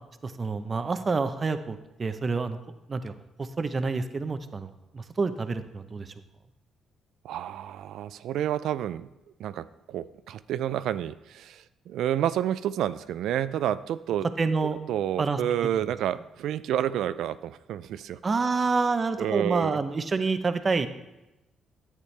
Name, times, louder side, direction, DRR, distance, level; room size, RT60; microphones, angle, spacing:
voice 1, 0.2-2.6 2.9-3.1 3.4-6.1 14.4-14.8 15.2-15.4 18.2-20.9, right 4 dB, 35° right, 10 dB, 0.7 m, -28 dB
voice 2, 7.2-9.1 9.4-14.3 14.9-18.2 19.2-19.8, right 11 dB, 80° right, 14 dB, 0.3 m, -29 dB
11.0 x 8.3 x 3.3 m, 0.96 s
cardioid pair, 90°, 0 cm